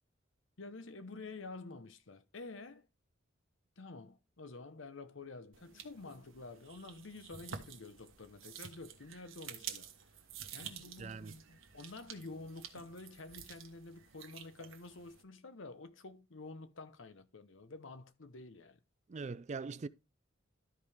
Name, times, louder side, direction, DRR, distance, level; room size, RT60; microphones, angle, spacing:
voice 1, 0.6-2.9 3.8-9.9 10.5-18.8, left 3 dB, 65° left, 0.9 m, -49 dB
sound 1, 5.5-15.2, right 8 dB, 70° right, 1.4 m, -50 dB
voice 2, 11.0-11.4 19.1-19.9, right 4 dB, 35° right, 0.4 m, -42 dB
12.5 x 4.9 x 3.5 m
head